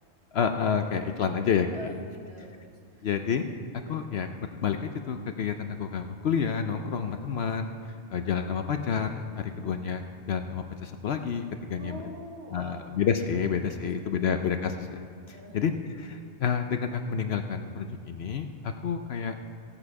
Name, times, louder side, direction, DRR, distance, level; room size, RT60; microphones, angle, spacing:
voice 1, 0.3-1.7 3.0-3.5 3.9-7.7 8.1-9.2 9.6-10.0 10.3-11.9 12.5-15.0 15.3-15.7 16.0-19.3, left 7 dB, 60° left, 6 dB, 0.8 m, -29 dB
voice 2, 1.7-3.1 11.7-12.9 13.7-14.3 15.3-15.6, right 1 dB, 55° right, 0 dB, 1.7 m, -45 dB
15.5 x 8.9 x 4.8 m, 2.3 s
omnidirectional pair, 1.3 m